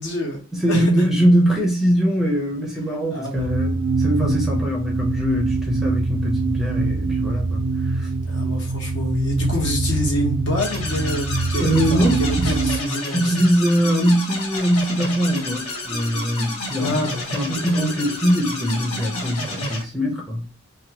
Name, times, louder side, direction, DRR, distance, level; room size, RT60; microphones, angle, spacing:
voice 1, 0.0-0.4 0.7-1.1 3.1-3.7 8.2-13.4 16.8-17.4, left 1 dB, 55° left, 1.0 m, -26 dB
voice 2, 0.5-8.1 11.6-12.5 13.1-17.0 17.3-20.4, equal, ahead, 0.6 m, -22 dB
sound 1, 3.4-12.8, right 3 dB, 60° right, 0.3 m, -24 dB
sound 2, 10.6-19.8, left 2 dB, 85° left, 0.9 m, -30 dB
2.8 x 2.2 x 2.8 m
head